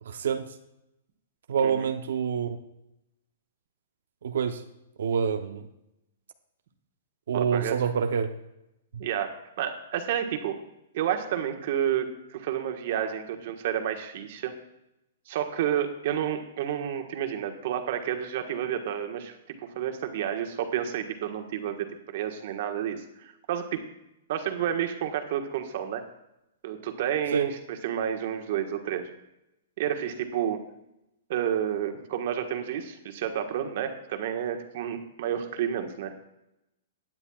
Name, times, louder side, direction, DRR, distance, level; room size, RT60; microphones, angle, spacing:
voice 1, 0.0-0.5 1.5-2.6 4.2-4.6 5.0-5.7 7.3-8.3 8.9-9.0 27.3-27.5, right 7 dB, 75° right, 7 dB, 0.8 m, -27 dB
voice 2, 7.3-7.8 9.0-10.5 10.9-14.5 15.3-19.4 19.7-21.9 22.1-23.8 24.3-26.0 26.6-27.6 27.8-29.1 29.8-30.6 31.3-36.2, right 9 dB, 55° right, 5 dB, 1.4 m, -30 dB
16.0 x 9.6 x 2.4 m, 0.87 s
hypercardioid pair, 150°, 0 cm